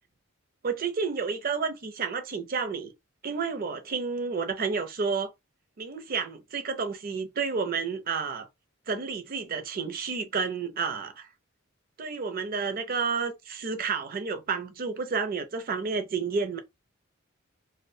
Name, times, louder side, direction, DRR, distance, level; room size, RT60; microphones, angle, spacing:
voice 1, 0.6-2.9 3.2-5.3 5.8-8.5 8.9-11.3 12.0-16.6, right 5 dB, 45° right, 0.5 m, -30 dB
2.3 x 2.1 x 2.6 m
head